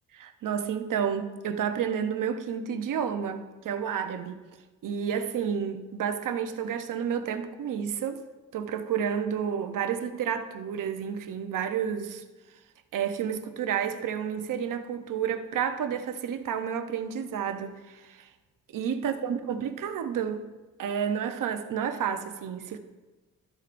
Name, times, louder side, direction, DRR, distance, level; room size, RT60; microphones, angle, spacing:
voice 1, 0.2-4.4 4.8-8.2 8.5-12.2 12.9-18.3 18.7-20.5 20.8-22.8, right 8 dB, 75° right, 0.8 m, -30 dB
13.0 x 7.5 x 2.5 m
wide cardioid pair, 140°, 32 cm